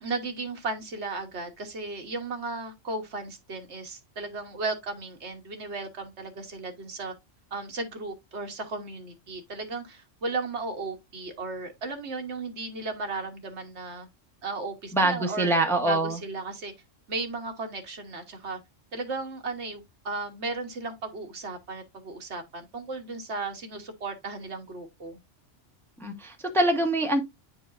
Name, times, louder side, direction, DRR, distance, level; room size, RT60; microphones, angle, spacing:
voice 1, 0.0-7.1 7.5-14.1 14.4-16.7 17.1-18.6 18.9-25.2, right 3 dB, 65° right, 1.5 m, -35 dB
voice 2, 14.9-16.2 26.0-27.2, right 1 dB, ahead, 0.9 m, -24 dB
9.8 x 4.7 x 2.5 m
omnidirectional pair, 1.3 m